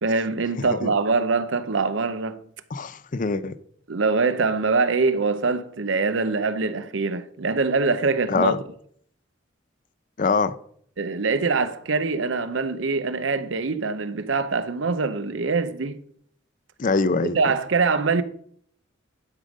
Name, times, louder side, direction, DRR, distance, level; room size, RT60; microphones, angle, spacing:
voice 1, 0.0-2.4 3.9-8.5 11.0-16.0 17.3-18.2, right 4 dB, 80° right, 0.7 m, -23 dB
voice 2, 0.6-0.9 2.7-3.5 8.3-8.6 10.2-10.5 16.8-17.4, left 4 dB, 45° left, 0.5 m, -23 dB
11.0 x 5.1 x 5.3 m
head